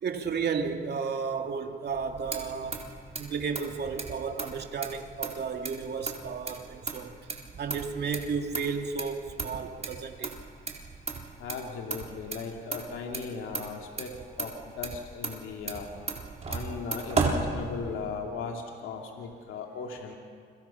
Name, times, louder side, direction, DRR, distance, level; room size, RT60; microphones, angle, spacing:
voice 1, 0.0-2.8 3.2-7.1 7.5-10.3 11.1-11.3 16.5-16.6, right 5 dB, 55° right, 4 dB, 2.5 m, -33 dB
Motor vehicle (road), 1.9-18.2, right 4 dB, 35° right, 4.1 m, -36 dB
voice 2, 11.4-15.9 16.5-20.2, left 5 dB, 85° left, 1 dB, 2.5 m, -37 dB
29.0 x 23.5 x 5.8 m, 2.1 s
cardioid pair, 90°, 20 cm